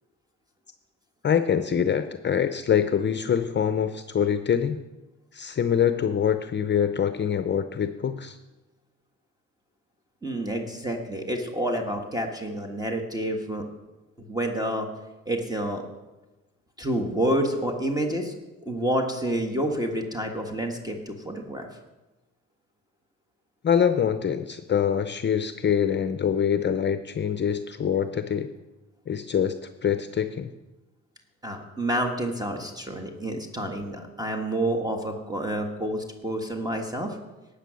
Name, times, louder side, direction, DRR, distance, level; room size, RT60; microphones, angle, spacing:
voice 1, 1.2-4.8 5.3-8.4 23.6-28.5 29.1-29.5 29.8-30.5, left 8 dB, 35° left, 9 dB, 0.6 m, -24 dB
voice 2, 10.2-13.6 14.3-14.9 15.2-15.8 16.8-18.3 18.6-21.7 31.4-37.2, right 1 dB, 15° right, 3 dB, 1.6 m, -28 dB
12.5 x 8.5 x 6.3 m, 1.1 s
cardioid pair, 90°, 30 cm